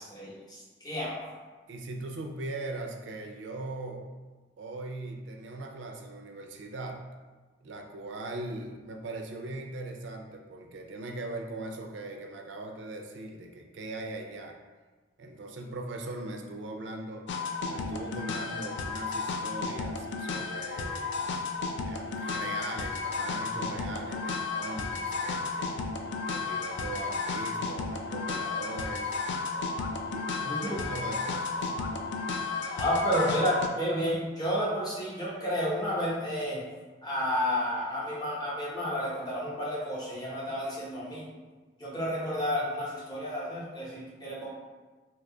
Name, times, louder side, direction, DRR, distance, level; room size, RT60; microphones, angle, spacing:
voice 1, 0.0-1.3 30.5-30.8 32.7-36.6 37.0-41.3 41.8-44.5, equal, 20° left, -6 dB, 0.7 m, -31 dB
voice 2, 1.7-4.1 4.6-7.0 7.6-14.6 15.2-17.3 17.7-21.1 21.9-25.7 26.3-29.2 30.0-31.7, right 2 dB, 65° right, 2 dB, 0.4 m, -40 dB
sound 1, 17.3-33.7, left 4 dB, 60° left, 0.3 m, -33 dB
2.8 x 2.3 x 3.7 m, 1.3 s
head